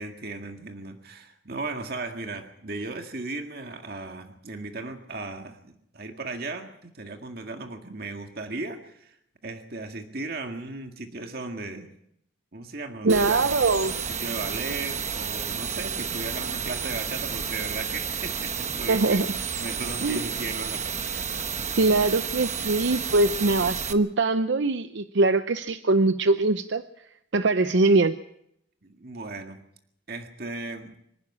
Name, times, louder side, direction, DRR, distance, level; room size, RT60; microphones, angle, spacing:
voice 1, 0.0-9.2 9.4-11.9 12.5-13.7 14.1-19.2 19.6-21.5 28.8-29.6 30.1-31.0, right 3 dB, 50° right, 5 dB, 1.9 m, -36 dB
voice 2, 13.0-14.0 18.9-19.3 20.0-20.2 21.8-26.8 27.3-28.1, right 3 dB, 70° right, 11 dB, 0.7 m, -22 dB
sound 1, 13.1-23.9, right 6 dB, 35° right, 1.1 m, -31 dB
25.5 x 11.0 x 9.7 m, 0.75 s
head